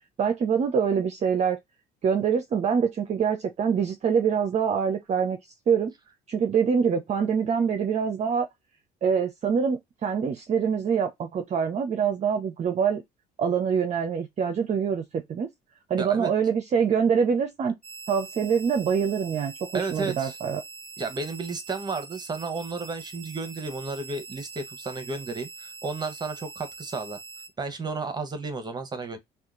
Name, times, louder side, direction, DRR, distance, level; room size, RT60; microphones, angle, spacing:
voice 1, 0.2-1.6 2.0-5.4 5.7-5.9 6.3-8.5 9.0-13.0 13.4-15.5 15.9-17.8 18.1-20.6, right 6 dB, 40° right, 0.6 m, -25 dB
voice 2, 16.0-16.3 19.7-20.4 21.0-27.2 27.6-29.2, right 3 dB, 25° right, 1.1 m, -33 dB
sound 1, 17.8-27.5, right 4 dB, 5° left, 1.7 m, -43 dB
2.8 x 2.4 x 3.7 m
cardioid pair, 110°, 17 cm